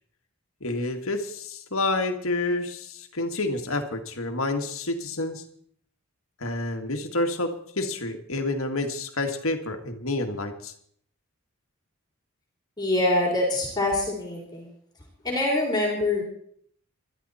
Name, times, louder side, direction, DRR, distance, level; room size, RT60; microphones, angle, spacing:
voice 1, 0.6-5.4 6.4-10.7, left 2 dB, 75° left, 4 dB, 1.9 m, -29 dB
voice 2, 12.8-14.7 15.2-16.2, left 2 dB, 20° left, -1 dB, 4.1 m, -25 dB
21.5 x 13.0 x 4.3 m, 0.63 s
head